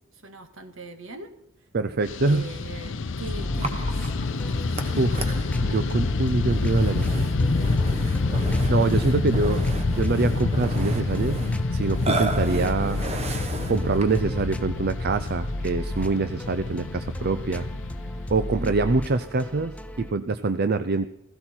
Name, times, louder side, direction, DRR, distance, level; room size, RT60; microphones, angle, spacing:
voice 1, 0.0-1.3 2.3-4.2 18.4-18.8, right 2 dB, 65° right, 7 dB, 1.9 m, -40 dB
voice 2, 1.7-2.5 5.0-5.3 5.6-7.2 8.7-9.6 9.9-11.4 11.7-13.0 13.7-17.7 18.3-21.1, right 3 dB, 50° right, 12 dB, 0.5 m, -25 dB
Fixed-wing aircraft airplane, 2.0-19.5, left 3 dB, 60° left, 0.7 m, -27 dB
sound 1, 3.2-20.1, left 1 dB, 5° left, 0.7 m, -35 dB
Burping eructation, 3.6-14.3, right 2 dB, 30° right, 1.3 m, -34 dB
16.5 x 15.5 x 4.4 m, 0.85 s
head